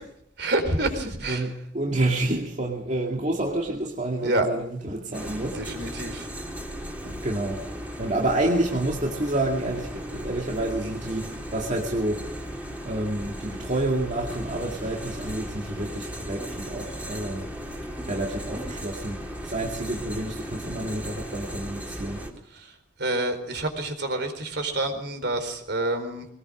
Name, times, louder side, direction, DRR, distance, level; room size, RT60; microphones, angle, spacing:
voice 1, 0.4-1.5 4.2-4.5 5.5-6.3 22.5-26.3, right 2 dB, 60° right, 7 dB, 4.3 m, -28 dB
voice 2, 1.3-6.1 7.0-7.7 8.0-12.4 12.8-17.5 18.0-22.3, right 1 dB, 40° right, 0 dB, 2.3 m, -29 dB
sound 1, 5.1-22.3, equal, 10° right, 3.4 m, -36 dB
22.0 x 19.5 x 6.3 m, 0.71 s
head